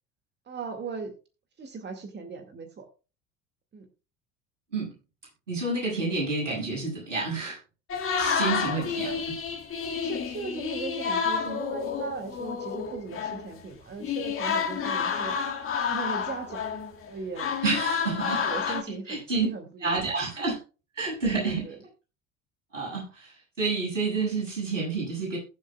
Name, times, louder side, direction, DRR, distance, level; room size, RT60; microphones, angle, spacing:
voice 1, 0.5-1.1 1.6-2.9 3.7-3.9 8.5-9.2 9.8-15.3 15.8-16.6 17.1-17.5 18.2-20.0 21.3-21.8, right 4 dB, 30° right, 6 dB, 2.2 m, -38 dB
voice 2, 5.5-7.6 8.2-9.1 17.6-19.5 19.8-20.6 21.0-21.6 22.7-23.3 23.6-25.4, right 3 dB, 80° right, -3 dB, 7.6 m, -29 dB
sound 1, 7.9-13.5 14.0-17.1 17.4-18.8, left 6 dB, 35° left, 2.2 m, -30 dB
21.0 x 7.3 x 2.4 m, 0.32 s
figure-of-eight pair, 65°, 37 cm